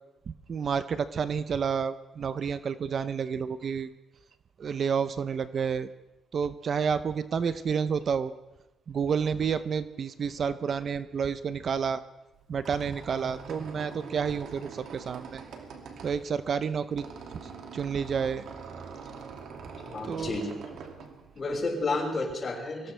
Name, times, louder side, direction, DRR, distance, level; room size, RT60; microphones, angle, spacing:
voice 1, 0.3-3.9 4.6-5.9 6.3-8.3 8.9-12.0 12.5-15.4 16.0-17.1 17.7-18.5 20.1-20.4, right 6 dB, 50° right, 13 dB, 0.7 m, -30 dB
Squeak, 12.3-21.9, right 5 dB, 75° right, 2.5 m, -44 dB
voice 2, 19.9-20.6 21.3-22.9, left 2 dB, 40° left, -1 dB, 6.2 m, -31 dB
23.5 x 18.0 x 3.4 m, 1.0 s
cardioid pair, 90°, 0 cm